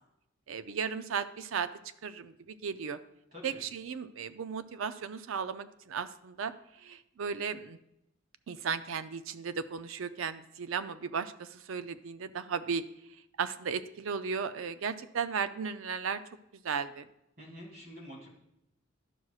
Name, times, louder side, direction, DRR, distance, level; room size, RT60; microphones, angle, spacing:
voice 1, 0.5-1.7 2.0-3.0 3.4-6.5 6.8-7.8 8.5-12.8 13.4-16.2 16.6-17.1, right 6 dB, 75° right, 12 dB, 0.5 m, -35 dB
voice 2, 3.3-3.6 17.4-18.3, equal, 50° right, -4 dB, 3.0 m, -47 dB
11.5 x 6.2 x 2.4 m, 0.83 s
head